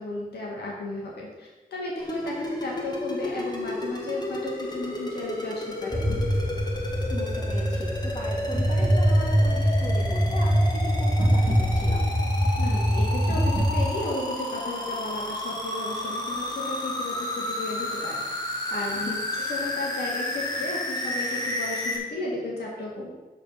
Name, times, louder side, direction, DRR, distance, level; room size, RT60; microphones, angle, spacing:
voice 1, 0.0-6.0 12.6-18.2 18.7-23.1, left 2 dB, 90° left, -2 dB, 1.8 m, -34 dB
sound 1, 2.0-22.0, left 1 dB, 25° left, 1.6 m, -32 dB
sound 2, 5.9-13.8, equal, 15° right, 2.2 m, -23 dB
voice 2, 7.1-12.1 19.0-19.2, left 1 dB, 45° left, -1 dB, 2.2 m, -38 dB
6.6 x 6.5 x 5.6 m, 1.2 s
cardioid pair, 85°, 16 cm